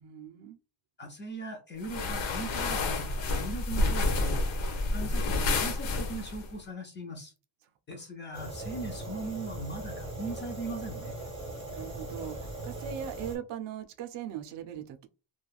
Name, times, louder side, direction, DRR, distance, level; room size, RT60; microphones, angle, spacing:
voice 1, 0.0-0.6 7.9-8.0 11.7-15.1, right 9 dB, 65° right, 0.5 m, -40 dB
voice 2, 1.0-4.4 4.9-7.3 7.9-11.2, right 2 dB, 25° left, 0.4 m, -39 dB
sound 1, 1.8-6.5, left 2 dB, 75° left, 1.0 m, -29 dB
Fire, 8.3-13.4, right 2 dB, 10° right, 1.1 m, -39 dB
3.1 x 2.2 x 2.3 m
cardioid pair, 175°, 47 cm